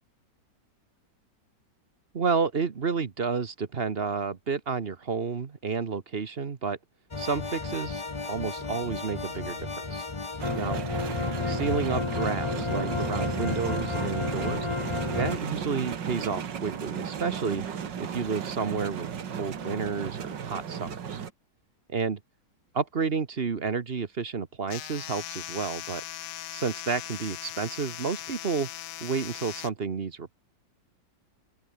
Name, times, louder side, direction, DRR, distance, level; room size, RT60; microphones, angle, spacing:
voice 1, 2.1-6.8 7.2-8.0 8.3-10.1 10.5-10.8 11.5-14.7 15.1-17.6 18.1-19.1 19.4-21.2 21.9-22.2 22.7-26.0 26.5-28.7 29.0-30.3, right 5 dB, 40° right, 1.2 m, -30 dB
sound 1, 7.1-15.4, left 3 dB, 20° left, 0.9 m, -32 dB
sound 2, 10.4-21.3, right 7 dB, 85° right, 2.3 m, -35 dB
sound 3, 24.7-29.7, left 14 dB, 75° left, 1.3 m, -39 dB
open air
omnidirectional pair, 1.9 m